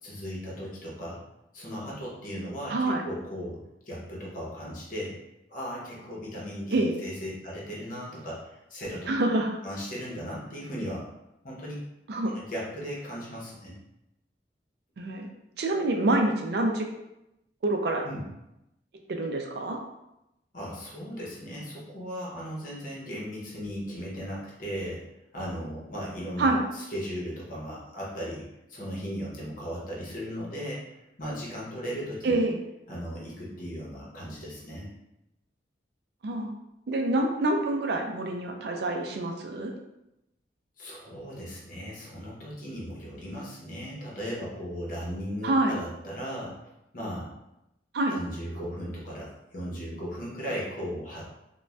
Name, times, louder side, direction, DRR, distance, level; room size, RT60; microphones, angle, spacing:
voice 1, 0.0-1.2 1.5-5.1 5.5-9.1 9.6-11.1 11.4-11.8 12.3-13.8 18.0-18.2 20.5-25.0 25.3-32.3 32.9-34.9 40.8-46.7 46.9-47.3 48.1-51.2, equal, 50° left, -5 dB, 0.9 m, -37 dB
voice 2, 2.7-3.0 6.7-6.9 9.1-9.5 12.1-12.3 15.0-15.3 15.6-16.9 17.6-18.0 19.1-19.8 26.4-26.6 32.2-32.6 36.2-36.5 36.9-39.7 45.4-45.8 47.9-48.2, right 2 dB, 65° right, 3 dB, 0.4 m, -26 dB
2.5 x 2.2 x 3.2 m, 0.89 s
head